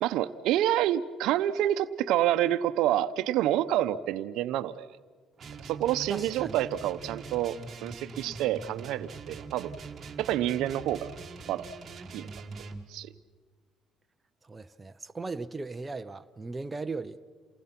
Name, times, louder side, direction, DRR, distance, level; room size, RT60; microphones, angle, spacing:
voice 1, 0.0-4.9 5.6-9.8 10.2-11.1 11.5-11.7 12.1-12.3 12.9-13.1, right 12 dB, 80° right, 0.8 m, -28 dB
sound 1, 5.4-12.8, right 4 dB, 35° right, 1.6 m, -43 dB
voice 2, 6.1-6.6 14.4-17.2, right 3 dB, 20° right, 0.7 m, -37 dB
28.5 x 19.5 x 5.9 m
cardioid pair, 125°, 0 cm